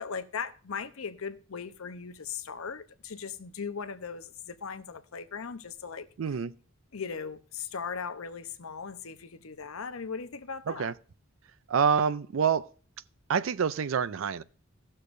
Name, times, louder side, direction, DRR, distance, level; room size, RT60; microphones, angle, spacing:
voice 1, 0.0-6.1 6.9-10.9, left 6 dB, 90° left, 0.8 m, -38 dB
voice 2, 6.2-6.5 10.7-10.9 11.7-12.7 13.3-14.4, right 6 dB, 70° right, 0.4 m, -27 dB
17.5 x 6.5 x 2.6 m
head